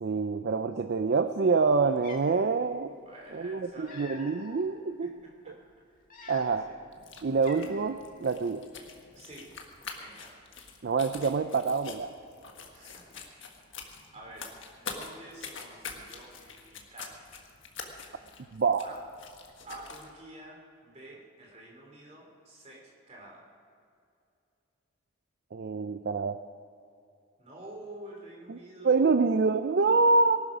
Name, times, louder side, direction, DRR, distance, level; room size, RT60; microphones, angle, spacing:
voice 1, 0.0-2.9 3.3-5.1 6.3-6.6 7.2-8.6 10.8-12.1 18.5-18.8 25.5-26.4 28.5-28.6 28.8-30.4, right 4 dB, 50° right, 10 dB, 0.4 m, -26 dB
Cat, 1.5-1.6 2.0-2.5 3.5-4.6 5.2-5.4 6.0-6.8 7.0-7.1 7.4-8.1, left 4 dB, 40° left, 1.9 m, -48 dB
voice 2, 3.0-4.2 5.0-5.6 6.4-6.9 9.1-9.5 10.0-10.4 12.7-13.3 14.1-17.2 18.8-19.0 19.6-23.4 27.4-29.1, right 1 dB, 30° right, -1 dB, 3.0 m, -48 dB
sound 1, 6.9-20.1, left 5 dB, 60° left, 1.6 m, -45 dB
19.0 x 12.0 x 5.0 m, 2.5 s
head